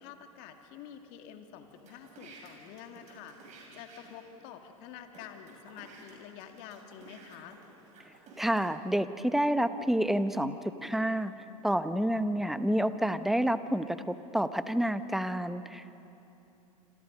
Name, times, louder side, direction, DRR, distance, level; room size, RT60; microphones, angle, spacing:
voice 1, 0.0-7.6, left 9 dB, 55° left, 5 dB, 2.2 m, -48 dB
sound 1, 1.7-4.3 4.9-5.0 5.1-8.6, right 4 dB, 40° right, 6.9 m, -53 dB
voice 2, 8.4-11.3 11.6-16.0, equal, ahead, 12 dB, 0.9 m, -29 dB
27.5 x 27.0 x 5.4 m, 2.9 s
hypercardioid pair, 95°, 19 cm